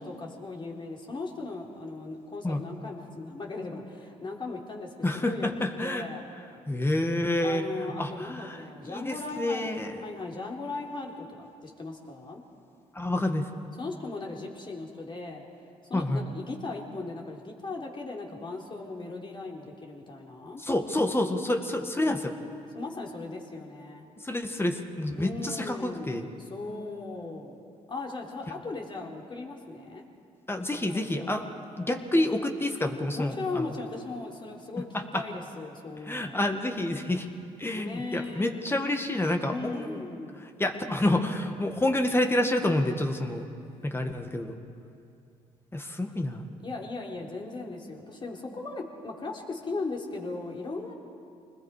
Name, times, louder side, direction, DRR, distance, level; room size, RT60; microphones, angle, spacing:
voice 1, 0.0-4.9 5.1-5.5 5.8-6.3 7.4-12.4 13.8-15.4 15.9-20.6 22.7-24.1 25.2-27.6 27.9-30.0 30.9-31.5 33.1-34.9 35.1-36.5 37.7-38.6 39.4-40.4 46.6-50.9, left 3 dB, 35° left, 0 dB, 3.6 m, -38 dB
voice 2, 5.0-6.0 6.7-7.6 8.0-10.0 12.9-13.5 15.9-16.2 20.6-22.3 24.2-26.2 30.5-31.4 31.8-33.7 34.9-35.2 36.1-37.3 37.6-40.1 40.4-43.4 43.8-44.6 45.7-46.5, left 1 dB, 15° left, 5 dB, 1.9 m, -28 dB
26.0 x 20.5 x 5.0 m, 2.6 s
supercardioid pair, 65°, 14 cm